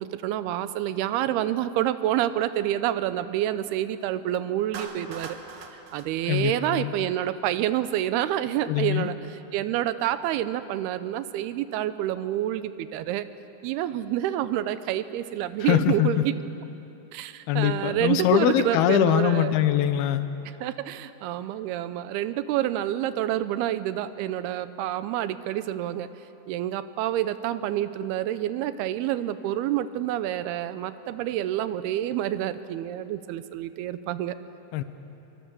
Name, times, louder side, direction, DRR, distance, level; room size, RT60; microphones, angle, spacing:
voice 1, 0.0-5.4 5.7-9.1 9.5-13.3 13.6-16.3 17.1-19.6 20.5-26.1 26.5-34.4, right 12 dB, 90° right, 13 dB, 2.7 m, -28 dB
Clapping, 4.7-7.1, right 4 dB, 55° right, 1.7 m, -42 dB
voice 2, 6.3-6.9 8.7-9.1 15.6-16.2 17.5-20.3 34.7-34.8, left 11 dB, 80° left, 11 dB, 2.8 m, -23 dB
23.5 x 23.5 x 7.1 m, 2.9 s
omnidirectional pair, 4.5 m